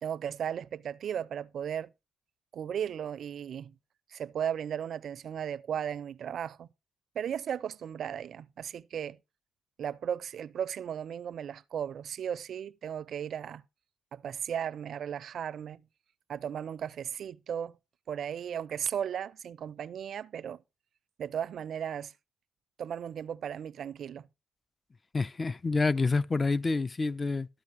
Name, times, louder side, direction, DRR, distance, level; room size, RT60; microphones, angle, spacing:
voice 1, 0.0-1.9 2.5-3.8 4.1-6.7 7.1-9.2 9.8-13.6 14.1-15.8 16.3-17.8 18.1-20.6 21.2-22.1 22.8-24.3, right 9 dB, 60° right, 0.5 m, -36 dB
voice 2, 25.1-27.5, left 3 dB, 25° left, 0.4 m, -28 dB
13.5 x 4.8 x 6.0 m
cardioid pair, 90°, 0 cm